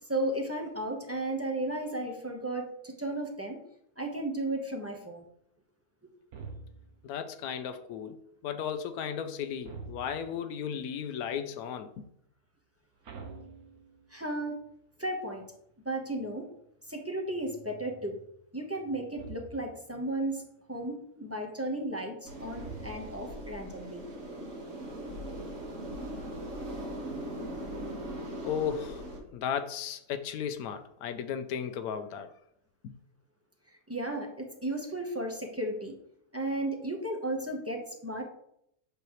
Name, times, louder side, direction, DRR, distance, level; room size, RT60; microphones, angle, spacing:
voice 1, 0.1-3.6 4.0-5.2 14.1-14.6 15.0-15.5 15.8-16.5 16.9-18.2 18.5-20.4 20.7-24.0 24.4-24.5 33.9-36.0 36.3-38.2, right 1 dB, 10° right, 0.9 m, -34 dB
sound 1, 6.3-7.1 9.6-10.4 13.0-14.2 19.2-19.8 22.5-23.4, right 4 dB, 90° right, 1.6 m, -46 dB
voice 2, 7.0-8.2 8.4-11.9 28.4-29.0 29.3-32.3, left 8 dB, 90° left, 1.1 m, -35 dB
sound 2, 22.2-29.2, right 1 dB, 60° right, 1.9 m, -40 dB
8.1 x 5.7 x 3.1 m
omnidirectional pair, 1.5 m